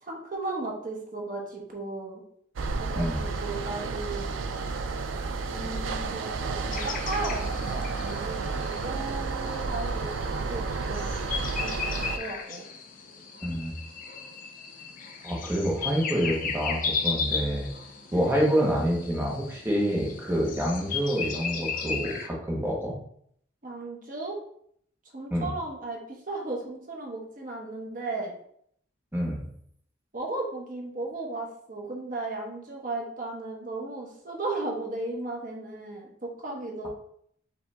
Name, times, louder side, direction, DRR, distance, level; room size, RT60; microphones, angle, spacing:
voice 1, 0.0-2.2 2.8-4.3 5.4-10.1 10.5-11.1 11.6-12.7 18.1-18.3 23.6-24.4 25.1-28.3 30.1-36.9, right 2 dB, 45° right, -1 dB, 1.0 m, -35 dB
sound 1, 2.6-12.2, right 4 dB, 80° right, 0.4 m, -31 dB
sound 2, 6.7-22.3, left 5 dB, 45° left, 0.5 m, -36 dB
voice 2, 13.4-13.7 15.2-17.7 18.1-23.0 25.3-25.5 29.1-29.4, equal, 10° right, -2 dB, 1.1 m, -27 dB
5.1 x 2.7 x 3.5 m, 0.67 s
head